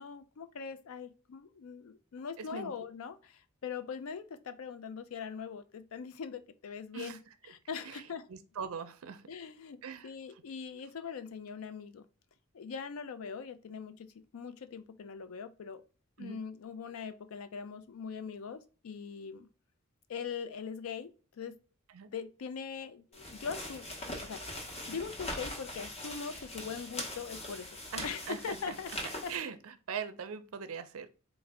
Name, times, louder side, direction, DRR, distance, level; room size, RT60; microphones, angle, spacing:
voice 1, 0.0-7.2 7.5-8.3 9.3-12.0 12.5-15.8 16.2-19.5 20.1-21.6 22.1-27.8 28.0-28.9 29.2-29.3, left 6 dB, 70° left, 0.4 m, -42 dB
voice 2, 8.3-9.2 9.8-10.1 16.2-16.4 21.9-22.1 27.9-28.7 29.3-31.1, right 6 dB, 70° right, 0.5 m, -41 dB
sound 1, 23.1-29.4, left 1 dB, 30° left, 0.8 m, -42 dB
3.6 x 2.0 x 3.4 m
head